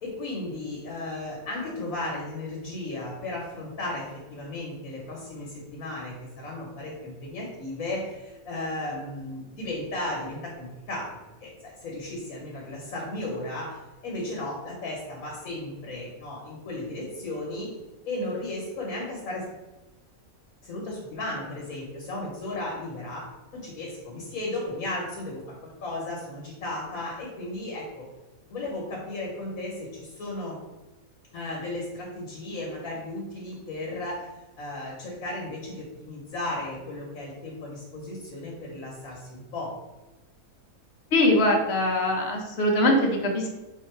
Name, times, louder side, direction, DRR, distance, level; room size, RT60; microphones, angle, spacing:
voice 1, 0.0-11.1 11.4-13.8 14.0-17.7 18.0-19.4 20.6-23.2 23.5-28.1 28.5-30.6 31.3-34.3 34.6-39.7, left 2 dB, 70° left, -2 dB, 1.4 m, -35 dB
voice 2, 41.1-43.5, left 1 dB, 50° left, 1 dB, 1.0 m, -22 dB
4.0 x 2.8 x 4.5 m, 1.1 s
omnidirectional pair, 1.6 m